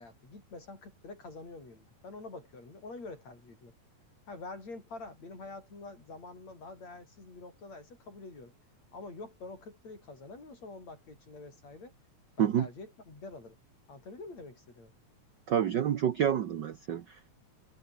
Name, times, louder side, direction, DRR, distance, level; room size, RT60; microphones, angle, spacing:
voice 1, 0.0-3.7 4.3-8.5 8.9-11.9 12.4-13.6 13.9-14.9, left 3 dB, 65° left, 9.3 m, -46 dB
voice 2, 15.5-17.3, right 9 dB, 75° right, 0.9 m, -28 dB
omnidirectional pair, 3.4 m